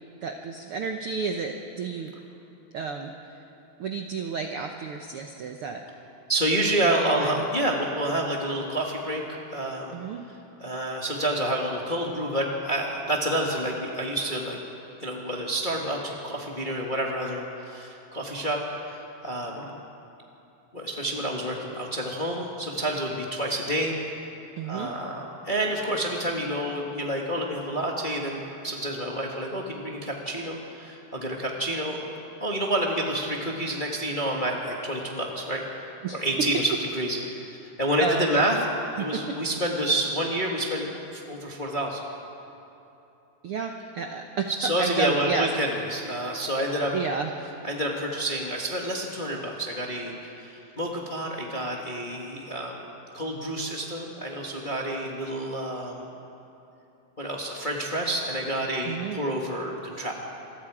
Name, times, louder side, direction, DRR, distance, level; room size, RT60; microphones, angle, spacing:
voice 1, 0.2-2.1 2.7-3.4 3.8-5.8 6.7-7.5 9.9-10.2 24.6-24.9 36.0-36.2 38.0-38.5 39.0-39.3 43.4-44.5 44.8-45.5 46.9-47.3 58.8-59.2, right 5 dB, 85° right, 3 dB, 1.2 m, -31 dB
voice 2, 6.3-9.9 10.6-14.6 15.0-19.8 20.7-24.0 24.6-38.5 38.9-42.0 44.6-46.9 47.6-56.0 57.2-60.1, right 1 dB, 25° left, -1 dB, 1.0 m, -29 dB
27.0 x 22.5 x 4.9 m, 2.9 s
omnidirectional pair, 4.0 m